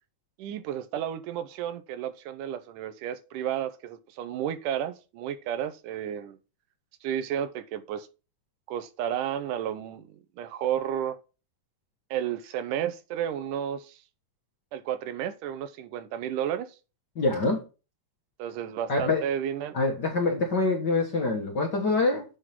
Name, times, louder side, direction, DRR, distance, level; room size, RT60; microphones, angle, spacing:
voice 1, 0.4-6.4 7.0-8.1 8.7-11.2 12.1-14.0 14.7-16.8 18.4-19.8, right 10 dB, 85° right, 2.3 m, -32 dB
voice 2, 17.1-17.6 18.9-19.2 19.7-22.2, left 3 dB, 50° left, 1.4 m, -25 dB
8.0 x 3.7 x 5.7 m
omnidirectional pair, 3.7 m